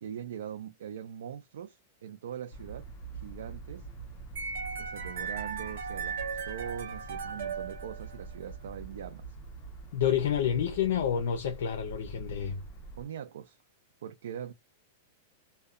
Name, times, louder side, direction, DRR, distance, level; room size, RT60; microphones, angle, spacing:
voice 1, 0.0-2.8 3.1-3.9 4.8-9.4 13.0-13.6 14.0-14.5, right 9 dB, 80° right, 0.4 m, -41 dB
sound 1, 2.5-13.0, right 4 dB, 35° left, 0.8 m, -45 dB
sound 2, 4.4-8.5, right 6 dB, 65° right, 0.8 m, -37 dB
voice 2, 9.9-12.6, left 9 dB, 70° left, 0.6 m, -29 dB
2.7 x 2.2 x 2.4 m
supercardioid pair, 165°, 0 cm